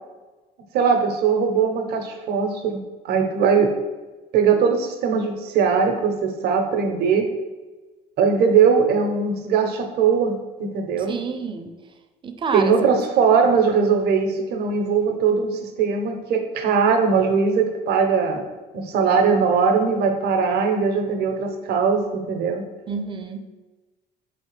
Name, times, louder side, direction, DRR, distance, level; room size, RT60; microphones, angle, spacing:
voice 1, 0.7-3.7 4.3-7.3 8.2-11.2 12.5-18.4 18.7-22.6, right 5 dB, 70° right, 5 dB, 0.6 m, -20 dB
voice 2, 11.1-11.7 12.2-12.7 22.9-23.5, right 5 dB, 30° right, 7 dB, 0.4 m, -28 dB
4.3 x 3.2 x 3.1 m, 1.2 s
cardioid pair, 110°, 17 cm